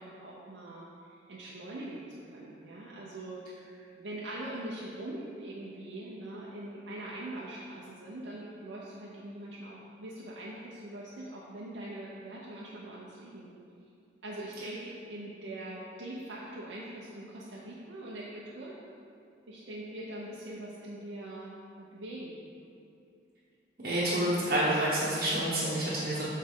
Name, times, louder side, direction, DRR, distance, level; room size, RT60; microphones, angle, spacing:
voice 1, 0.0-3.7 4.0-13.5 14.2-18.8 19.5-22.4, right 1 dB, 85° right, -6 dB, 0.8 m, -42 dB
voice 2, 23.8-26.2, right 1 dB, 50° right, -10 dB, 1.1 m, -28 dB
7.4 x 4.2 x 3.7 m, 2.5 s
head